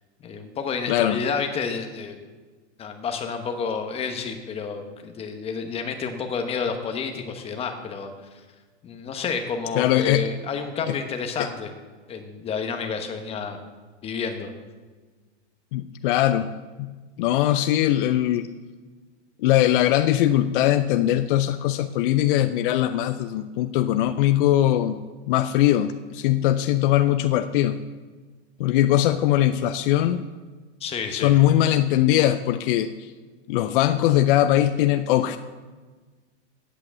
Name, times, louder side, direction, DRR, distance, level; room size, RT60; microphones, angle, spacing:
voice 1, 0.2-2.2 2.8-8.4 8.8-11.7 12.1-13.6 14.0-14.5 30.8-31.3, left 5 dB, 15° left, 6 dB, 0.9 m, -30 dB
voice 2, 0.9-1.2 9.8-10.3 10.9-11.0 11.4-11.5 15.7-16.5 16.8-16.9 17.2-18.4 19.4-27.8 28.6-30.2 31.1-32.9 33.5-35.4, left 13 dB, 50° left, 10 dB, 0.5 m, -21 dB
8.6 x 7.6 x 7.4 m, 1.4 s
supercardioid pair, 150°, 35 cm